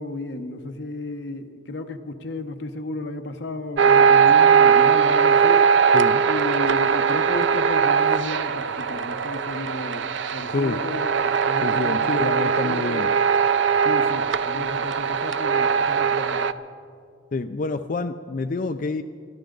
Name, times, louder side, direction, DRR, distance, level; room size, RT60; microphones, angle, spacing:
voice 1, 0.0-5.7 6.2-10.1 10.3-13.0 13.8-16.4, left 2 dB, 60° left, 6 dB, 1.0 m, -33 dB
sound 1, 3.8-16.5, right 6 dB, 75° right, 0.5 m, -20 dB
voice 2, 5.9-6.2 10.5-10.8 11.6-13.1 17.3-19.0, left 3 dB, 45° left, 9 dB, 0.4 m, -27 dB
26.5 x 12.5 x 3.9 m, 2.3 s
head